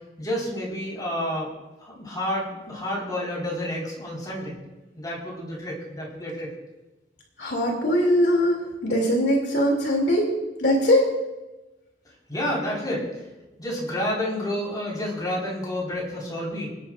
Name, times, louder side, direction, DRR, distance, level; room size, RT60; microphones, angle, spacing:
voice 1, 0.2-1.5 1.8-4.6 4.9-6.5 12.3-13.1 13.6-16.7, left 1 dB, 25° left, -4 dB, 4.6 m, -29 dB
voice 2, 7.4-10.3 10.6-11.1, equal, 70° left, -1 dB, 2.8 m, -21 dB
27.5 x 10.0 x 2.5 m, 1.1 s
head